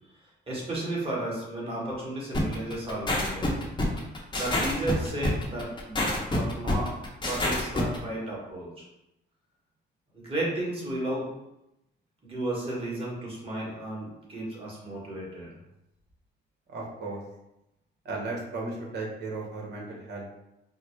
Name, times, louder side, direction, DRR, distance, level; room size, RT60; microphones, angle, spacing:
voice 1, 0.0-3.6 4.3-8.8 10.1-11.3 12.2-15.6, right 1 dB, 25° right, -5 dB, 1.5 m, -33 dB
sound 1, 2.3-8.0, left 1 dB, 25° left, 0.8 m, -27 dB
voice 2, 16.7-17.2 18.0-20.2, right 3 dB, 60° right, -1 dB, 1.0 m, -35 dB
4.0 x 2.0 x 3.1 m, 0.88 s
cardioid pair, 90°, 20 cm